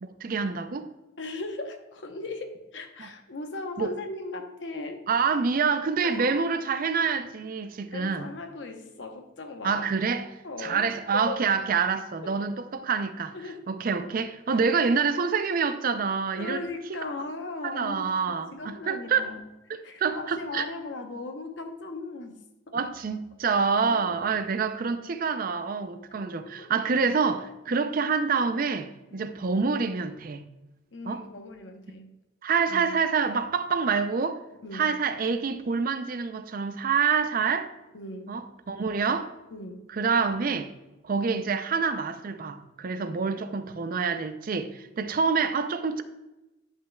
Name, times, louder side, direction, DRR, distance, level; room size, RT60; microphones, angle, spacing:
voice 1, 0.2-0.9 3.0-3.1 3.8-3.9 5.1-8.3 9.6-10.3 10.6-13.3 13.7-16.6 16.9-17.0 17.6-19.3 19.7-20.6 22.7-30.4 31.1-31.2 32.4-34.4 34.7-37.7 38.3-39.3 39.9-40.7 41.0-46.0, right 5 dB, 50° right, 0.4 m, -27 dB
voice 2, 1.2-5.0 6.0-6.3 7.9-9.9 10.4-10.9 11.1-11.4 12.2-12.4 13.3-13.6 14.5-14.6 16.4-19.4 19.8-22.9 23.8-24.3 26.1-26.7 27.7-27.9 29.1-29.3 30.9-32.1 32.7-32.9 34.6-34.9 37.9-38.4 39.5-39.8, left 3 dB, 85° left, 0.8 m, -38 dB
9.9 x 5.4 x 2.2 m
head